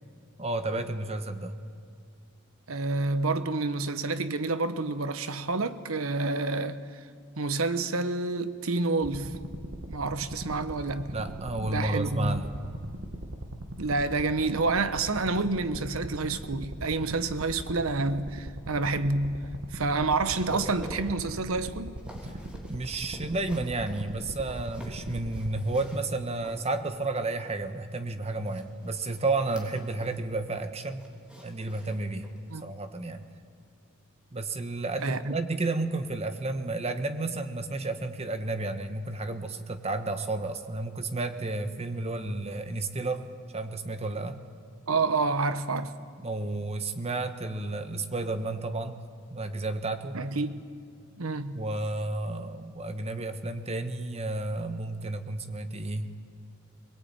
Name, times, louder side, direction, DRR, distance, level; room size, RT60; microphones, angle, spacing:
voice 1, 0.4-1.6 11.1-12.6 22.3-22.4 22.7-31.1 31.4-32.3 32.6-33.3 34.3-44.4 46.2-49.0 49.3-50.2 51.5-56.1, right 2 dB, 30° right, 1.3 m, -32 dB
voice 2, 2.7-7.0 7.4-9.4 9.9-11.1 11.6-12.4 13.8-19.4 19.7-21.9 32.5-32.7 35.0-35.4 44.9-45.9 50.1-50.6 51.2-51.6, right 3 dB, 80° right, 1.1 m, -29 dB
sound 1, 9.0-25.6, right 1 dB, 55° right, 1.6 m, -40 dB
sound 2, 20.3-27.1 28.4-30.3 30.5-32.5 32.9-33.1 33.6-33.7, equal, 5° right, 3.4 m, -48 dB
22.0 x 21.5 x 9.0 m
head